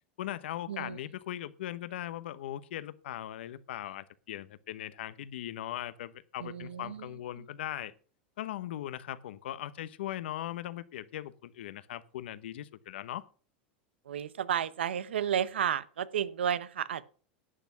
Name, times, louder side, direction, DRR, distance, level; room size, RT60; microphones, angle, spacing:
voice 1, 0.2-7.9 8.4-13.2, left 12 dB, 80° left, 1.0 m, -39 dB
voice 2, 6.4-7.1 14.1-17.0, right 9 dB, 90° right, 0.8 m, -32 dB
11.5 x 8.3 x 6.0 m
hypercardioid pair, 105°, 6 cm